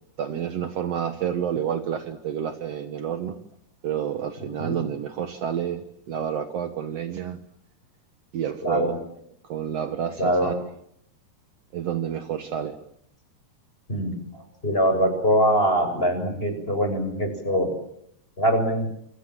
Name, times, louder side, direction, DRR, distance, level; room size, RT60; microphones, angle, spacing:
voice 1, 0.2-3.4 3.8-7.4 8.3-8.9 9.4-10.7 11.7-12.8, right 9 dB, 80° right, 8 dB, 1.4 m, -29 dB
voice 2, 8.6-9.0 10.2-10.5 13.9-14.1 14.6-17.7 18.4-18.9, equal, 10° left, 6 dB, 7.2 m, -23 dB
27.5 x 27.0 x 7.6 m, 0.72 s
omnidirectional pair, 4.9 m